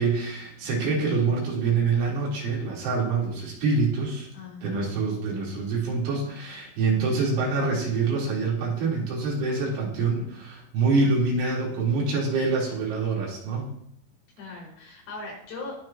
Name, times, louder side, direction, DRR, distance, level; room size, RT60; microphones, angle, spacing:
voice 1, 0.0-4.3 4.6-13.7, right 4 dB, 65° right, -4 dB, 5.8 m, -25 dB
voice 2, 4.3-5.0 14.4-15.8, left 3 dB, 75° left, -3 dB, 7.5 m, -39 dB
20.5 x 8.9 x 2.9 m, 0.69 s
omnidirectional pair, 5.9 m